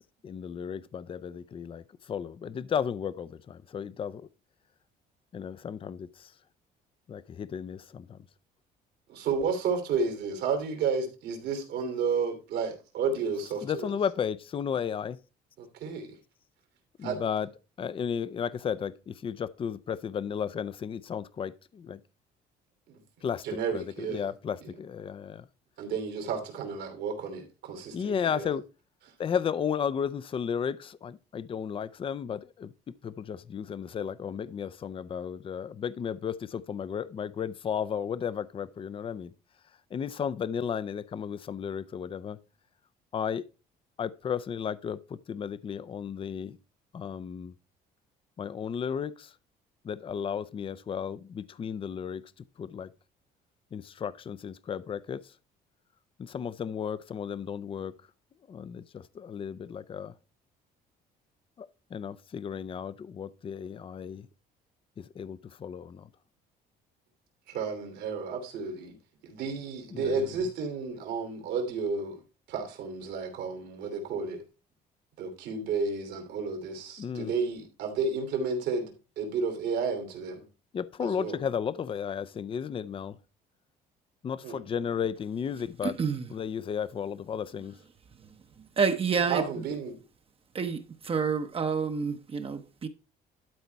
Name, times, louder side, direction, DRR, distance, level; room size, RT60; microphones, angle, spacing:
voice 1, 0.2-1.8 2.1-4.3 5.3-6.1 7.1-8.2 13.6-15.2 17.0-17.5 17.8-22.0 23.2-23.4 23.7-25.4 27.9-28.6 29.2-32.7 33.0-39.3 39.9-42.4 43.1-43.4 44.0-46.6 46.9-47.5 48.4-49.3 49.8-52.2 52.6-52.9 53.7-55.2 56.2-57.9 58.5-60.1 61.6-64.3 65.0-66.1 69.9-70.2 77.0-77.3 80.7-83.2 84.2-86.0 86.3-87.7, left 7 dB, 30° left, 0.5 m, -34 dB
voice 2, 9.1-13.9 15.6-16.2 17.0-17.2 22.9-24.3 24.6-24.7 25.8-28.5 67.5-68.9 69.2-72.2 72.5-74.4 75.2-80.4 81.0-81.4 84.4-84.7 89.2-89.9, right 5 dB, 80° right, 2.9 m, -32 dB
voice 3, 85.8-86.2 88.8-89.4 90.5-90.8 91.1-92.9, right 5 dB, 35° right, 0.8 m, -28 dB
12.0 x 4.1 x 4.6 m
cardioid pair, 110°, 17 cm